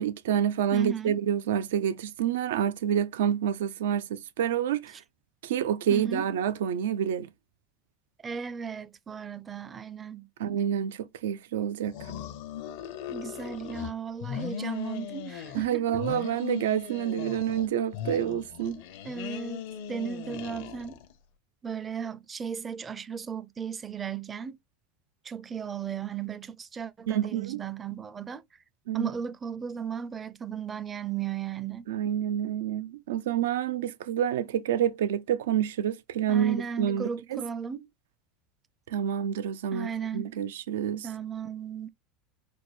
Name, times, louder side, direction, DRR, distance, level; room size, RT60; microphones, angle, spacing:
voice 1, 0.0-4.9 5.4-7.3 10.4-12.0 15.5-18.8 27.1-27.6 28.9-29.1 31.9-37.4 38.9-39.9 40.1-41.1, right 9 dB, 80° right, 0.4 m, -28 dB
voice 2, 0.7-1.2 5.9-6.3 8.2-10.3 13.1-15.9 18.8-19.6 19.9-21.0 21.6-24.6 25.2-28.4 28.9-31.9 36.3-37.9 39.7-40.3 41.0-41.9, right 7 dB, 25° right, 0.5 m, -36 dB
sound 1, 11.8-13.9 14.2-15.7 15.9-17.7 17.9-21.1, left 9 dB, 75° left, 0.7 m, -38 dB
4.3 x 2.2 x 3.1 m
hypercardioid pair, 90°, 0 cm